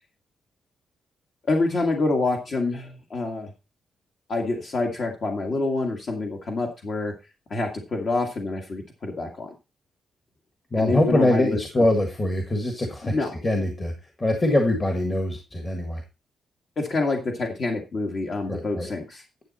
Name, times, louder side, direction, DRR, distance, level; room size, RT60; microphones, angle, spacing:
voice 1, 1.5-3.5 4.3-7.1 7.5-9.5 10.8-11.9 13.0-13.3 16.8-19.2, left 3 dB, 45° left, 1 dB, 1.9 m, -27 dB
voice 2, 10.7-16.0 18.5-18.9, left 1 dB, 25° left, 4 dB, 1.7 m, -23 dB
10.5 x 7.6 x 4.2 m, 0.28 s
wide cardioid pair, 150°, 0 cm